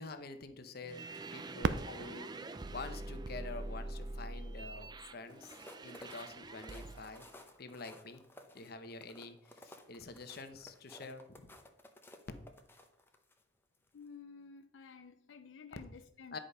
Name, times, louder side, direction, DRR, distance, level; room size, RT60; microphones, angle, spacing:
voice 1, 0.0-2.3 2.7-7.3 7.6-8.2 8.5-11.5 16.3-16.4, left 3 dB, 55° left, 0.9 m, -47 dB
sound 1, 0.8-7.3, right 2 dB, 20° right, 0.5 m, -45 dB
Fireworks, 1.6-4.4 5.1-5.2 5.8-6.3 8.2-8.3, right 4 dB, 80° right, 0.5 m, -40 dB
sound 2, 5.2-13.4 13.9-14.1, left 1 dB, 10° left, 0.8 m, -56 dB
voice 2, 13.9-16.4, left 5 dB, 85° left, 0.5 m, -52 dB
10.0 x 5.0 x 5.5 m
head